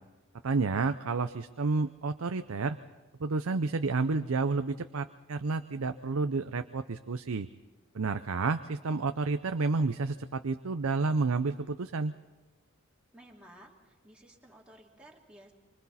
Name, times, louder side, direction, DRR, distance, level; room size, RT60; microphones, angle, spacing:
voice 1, 0.4-2.8 3.2-7.5 7.9-12.1, right 4 dB, 80° right, 9 dB, 0.6 m, -30 dB
voice 2, 13.1-15.5, right 1 dB, 5° right, -2 dB, 2.6 m, -55 dB
26.0 x 24.5 x 4.2 m, 1.2 s
head